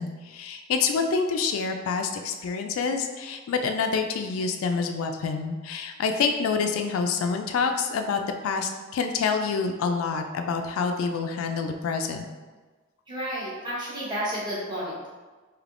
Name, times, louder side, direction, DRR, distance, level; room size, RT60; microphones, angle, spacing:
voice 1, 0.0-12.3, left 5 dB, 85° left, 5 dB, 0.3 m, -27 dB
voice 2, 13.1-15.2, equal, 20° right, -8 dB, 1.0 m, -32 dB
3.3 x 2.7 x 2.5 m, 1.3 s
head